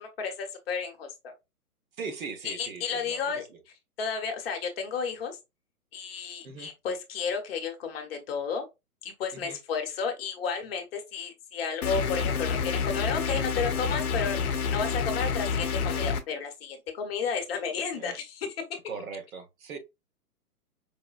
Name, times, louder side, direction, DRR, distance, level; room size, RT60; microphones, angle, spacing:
voice 1, 0.0-1.3 2.4-3.4 4.0-5.4 5.9-8.6 9.0-18.5, left 5 dB, 40° left, 0.9 m, -32 dB
voice 2, 2.0-3.6 6.4-6.7 9.3-9.6 17.9-18.2 18.9-19.8, right 5 dB, 60° right, 1.0 m, -40 dB
sound 1, 11.8-16.2, left 6 dB, 65° left, 0.6 m, -28 dB
4.8 x 2.1 x 2.4 m
figure-of-eight pair, 120°, 46 cm